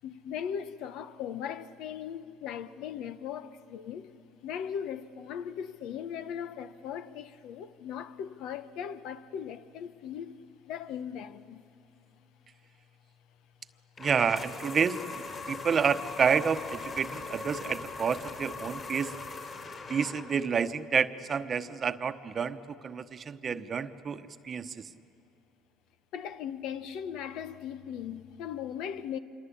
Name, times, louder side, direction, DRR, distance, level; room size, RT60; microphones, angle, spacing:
voice 1, 0.0-4.1 4.4-10.3 10.7-11.6 26.1-29.2, left 8 dB, 70° left, 0.9 m, -38 dB
sound 1, 14.0-20.5, left 4 dB, 40° left, 6.0 m, -40 dB
voice 2, 14.0-19.1 19.9-24.9, right 6 dB, 35° right, 1.0 m, -29 dB
27.0 x 23.0 x 8.6 m
supercardioid pair, 100°, 0 cm